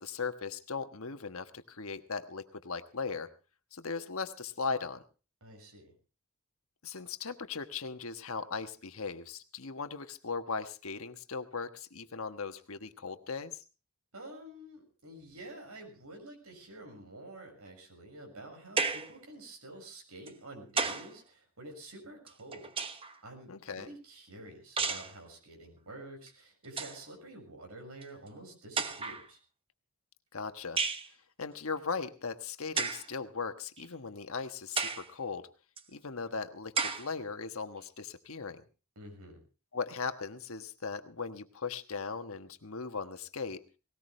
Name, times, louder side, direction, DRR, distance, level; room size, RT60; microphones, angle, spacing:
voice 1, 0.0-3.3 3.7-5.0 6.8-13.6 23.5-23.9 30.3-30.8 31.4-35.5 35.9-38.6 39.7-43.6, left 4 dB, 70° left, 8 dB, 1.3 m, -38 dB
voice 2, 5.4-5.9 14.1-22.7 23.2-29.4 38.9-39.4, right 1 dB, 85° right, 3 dB, 6.5 m, -49 dB
sound 1, 18.8-19.2 20.3-21.1 22.3-23.2 24.8-25.2 26.3-26.4 26.6-27.0 28.0-28.1 28.8-29.3 30.8-31.1 32.8-33.1 33.8-33.9 34.8-35.1 35.8-35.9 36.8-37.1, right 5 dB, 25° right, 1.0 m, -33 dB
19.0 x 18.5 x 3.3 m, 0.34 s
head